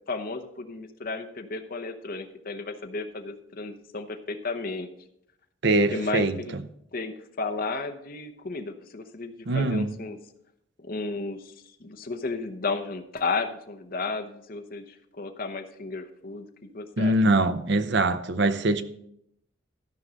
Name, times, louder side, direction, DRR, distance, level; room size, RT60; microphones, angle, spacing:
voice 1, 0.1-4.9 5.9-6.5 6.9-10.2 10.8-11.5 11.8-17.1, left 3 dB, 50° left, 0.9 m, -33 dB
voice 2, 5.6-6.4 9.5-9.9 17.0-18.8, right 2 dB, 60° right, 0.7 m, -23 dB
13.5 x 5.4 x 6.3 m
head